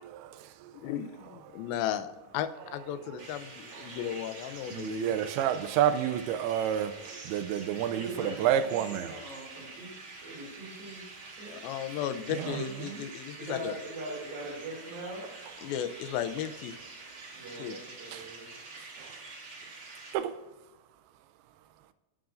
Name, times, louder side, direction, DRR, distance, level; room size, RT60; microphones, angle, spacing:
voice 1, 0.8-5.2 11.5-13.7 15.6-16.8 17.6-17.8, left 10 dB, 80° left, 2.3 m, -35 dB
sound 1, 3.2-20.1, right 3 dB, 50° right, 1.7 m, -47 dB
voice 2, 4.7-6.9 7.3-9.1 12.3-13.0 20.1-20.3, right 10 dB, 90° right, 2.6 m, -29 dB
voice 3, 7.9-9.9 10.2-11.6 13.4-15.3 17.3-18.5 19.1-19.2, right 1 dB, 70° right, 4.2 m, -42 dB
16.5 x 6.0 x 2.5 m
omnidirectional pair, 4.4 m